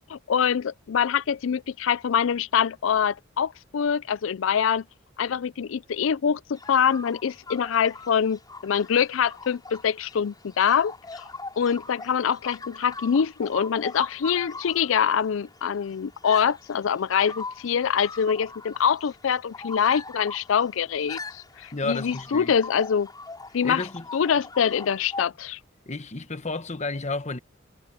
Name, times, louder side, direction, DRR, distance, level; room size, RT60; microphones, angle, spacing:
voice 1, 0.1-4.8 5.2-11.3 11.6-23.1 23.5-23.8 24.1-25.6, left 7 dB, 70° left, 0.4 m, -24 dB
sound 1, 6.5-25.2, left 3 dB, 20° left, 5.1 m, -41 dB
voice 2, 21.7-22.5 23.6-24.0 25.9-27.4, left 3 dB, 35° left, 1.3 m, -31 dB
head